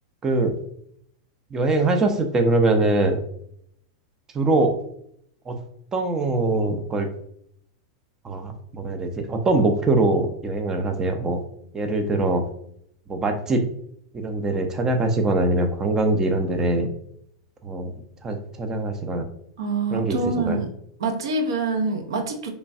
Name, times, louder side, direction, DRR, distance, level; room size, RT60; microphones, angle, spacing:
voice 1, 0.2-0.5 1.5-3.2 4.3-4.7 5.5-5.6 5.9-7.1 8.2-11.4 11.7-12.4 13.1-13.6 14.1-16.9 17.6-17.9 18.2-19.2 19.9-20.2 20.5-20.6, right 2 dB, 20° right, 5 dB, 0.4 m, -22 dB
voice 2, 19.6-20.7 21.0-22.5, right 3 dB, 75° right, 4 dB, 0.6 m, -25 dB
3.0 x 2.2 x 2.6 m, 0.69 s
hypercardioid pair, 110°, 3 cm